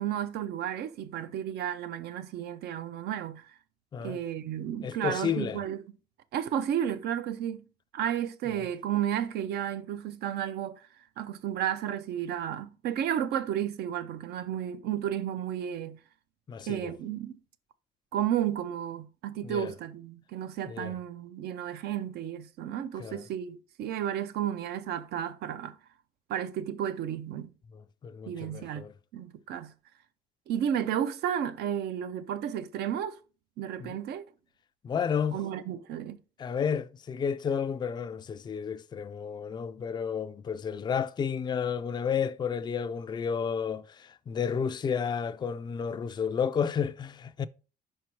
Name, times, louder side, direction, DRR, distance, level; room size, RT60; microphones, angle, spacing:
voice 1, 0.0-3.5 4.0-5.8 6.3-7.6 7.9-10.9 11.2-16.0 16.7-17.4 18.1-25.8 26.3-27.5 28.3-28.8 29.1-29.7 30.5-33.2 33.6-34.2 35.3-36.2, right 10 dB, 70° right, 0.6 m, -32 dB
voice 2, 4.8-5.6 16.5-16.9 19.4-19.7 20.7-20.9 23.0-23.2 28.0-28.9 33.8-34.0 34.8-35.4 36.4-47.5, left 7 dB, 25° left, 0.4 m, -31 dB
5.2 x 4.5 x 4.6 m
cardioid pair, 110°, 17 cm